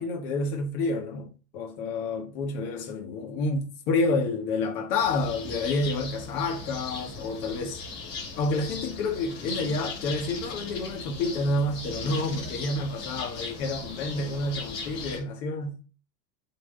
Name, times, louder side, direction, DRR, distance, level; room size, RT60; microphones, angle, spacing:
voice 1, 0.0-7.8 8.4-15.8, left 2 dB, 65° left, 1.9 m, -29 dB
sound 1, 5.0-15.2, left 4 dB, 85° left, 3.4 m, -38 dB
7.5 x 4.1 x 4.1 m
hypercardioid pair, 100°, 48 cm